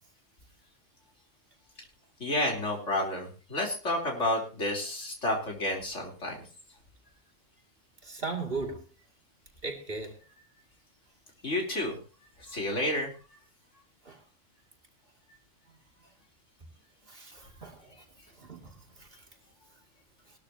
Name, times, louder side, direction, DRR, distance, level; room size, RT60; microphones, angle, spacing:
voice 1, 2.2-6.4 11.4-12.0 12.4-13.1, left 1 dB, 70° left, 3.9 m, -30 dB
voice 2, 8.0-8.8 9.6-10.1 14.0-14.2 17.1-17.9 18.4-18.7 19.0-19.1, right 3 dB, 45° right, 2.6 m, -37 dB
19.5 x 13.0 x 2.8 m
omnidirectional pair, 1.3 m